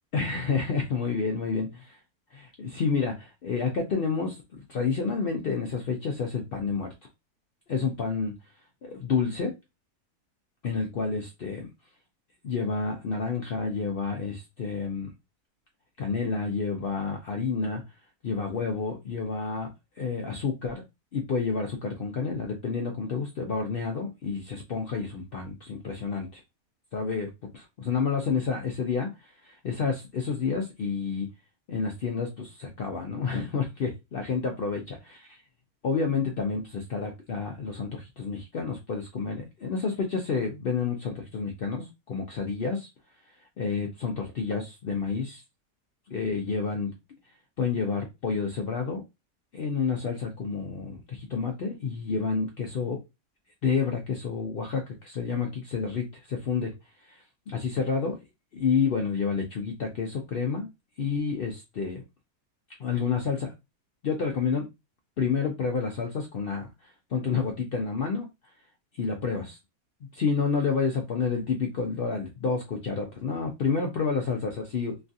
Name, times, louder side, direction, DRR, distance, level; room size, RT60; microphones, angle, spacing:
voice 1, 0.1-2.0 2.3-6.9 7.7-8.3 8.8-9.5 10.6-11.7 12.4-15.1 16.0-17.8 18.2-19.7 20.0-20.8 21.1-26.4 26.9-31.3 31.7-35.0 35.8-42.9 43.6-45.4 46.1-46.9 47.6-49.0 49.5-53.0 53.6-56.7 57.1-58.1 58.5-60.7 61.0-62.0 62.8-63.5 64.0-64.6 65.2-68.3 69.0-69.6 70.1-74.9, left 5 dB, 75° left, 2 dB, 0.5 m, -29 dB
3.1 x 2.3 x 2.6 m, 0.23 s
omnidirectional pair, 1.6 m